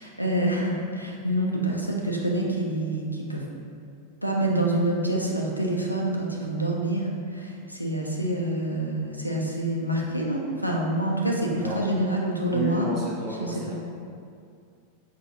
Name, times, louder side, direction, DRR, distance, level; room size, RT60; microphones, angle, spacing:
voice 1, 0.0-3.4 4.2-12.9 13.4-13.7, right 1 dB, 90° left, -2 dB, 0.4 m, -27 dB
voice 2, 12.5-13.7, equal, 25° right, -5 dB, 0.8 m, -32 dB
4.3 x 2.3 x 2.7 m, 2.4 s
figure-of-eight pair, 90°, 0 cm